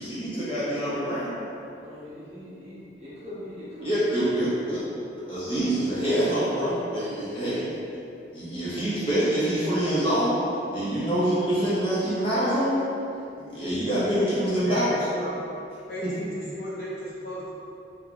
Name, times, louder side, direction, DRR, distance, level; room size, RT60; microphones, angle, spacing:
voice 1, 0.0-1.3 3.8-4.8 5.3-7.7 8.3-10.4 10.7-12.9 13.4-14.8, right 1 dB, 30° left, -11 dB, 1.3 m, -25 dB
voice 2, 1.7-4.8, equal, 35° right, -12 dB, 1.1 m, -41 dB
voice 3, 14.5-15.4 15.9-17.5, equal, 55° left, -9 dB, 1.2 m, -35 dB
3.7 x 2.7 x 3.5 m, 2.7 s
head